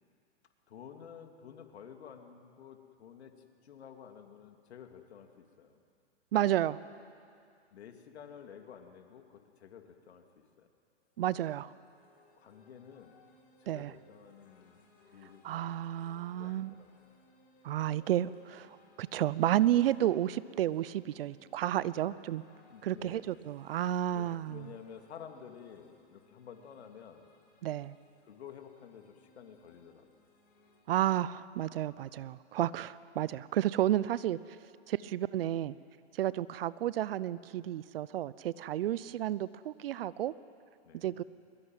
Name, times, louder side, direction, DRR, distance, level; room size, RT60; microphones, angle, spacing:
voice 1, 0.7-5.8 7.7-10.2 10.6-10.7 12.4-13.1 13.6-14.8 15.1-15.7 16.4-17.1 22.6-23.4 24.1-27.2 28.2-30.2 38.9-39.1 40.8-41.2, left 8 dB, 65° left, 5 dB, 2.9 m, -51 dB
voice 2, 6.3-6.8 11.2-11.7 13.7-13.9 15.4-16.7 17.6-18.7 19.0-22.4 22.8-24.7 27.6-27.9 30.9-34.4 34.9-35.8 36.1-40.3 40.9-41.2, right 12 dB, 55° right, 19 dB, 0.8 m, -31 dB
sound 1, 11.0-30.8, left 2 dB, 25° left, 5.1 m, -65 dB
22.5 x 21.5 x 9.2 m, 2.4 s
hypercardioid pair, 125°, 34 cm